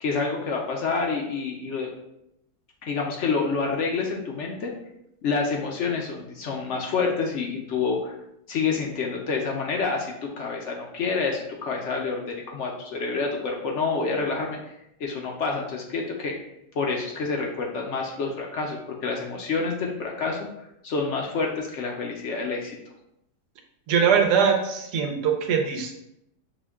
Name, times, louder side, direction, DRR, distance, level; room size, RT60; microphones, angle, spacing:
voice 1, 0.0-1.9 2.8-4.7 5.2-8.1 8.5-14.6 15.0-16.3 16.7-20.5 20.8-22.8, left 4 dB, 65° left, 0 dB, 0.7 m, -28 dB
voice 2, 23.9-25.9, right 6 dB, 80° right, 3 dB, 1.2 m, -22 dB
5.9 x 2.2 x 3.5 m, 0.81 s
omnidirectional pair, 1.7 m